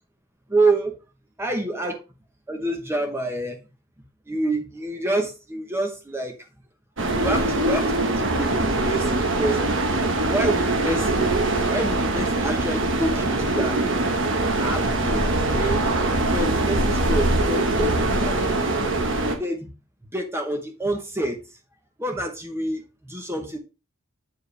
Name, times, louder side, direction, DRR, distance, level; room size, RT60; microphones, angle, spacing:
voice 1, 0.5-0.9 1.4-2.0 2.5-3.6 4.3-6.3 7.1-9.6 10.1-11.3 11.7-13.8 14.6-15.3 15.5-15.8 16.3-18.4 19.4-19.7 20.1-21.4 22.0-22.8 23.1-23.6, right 2 dB, 10° right, 3 dB, 0.8 m, -27 dB
sound 1, 7.0-19.4, right 2 dB, 60° right, 1.2 m, -22 dB
8.1 x 4.6 x 3.3 m, 0.29 s
head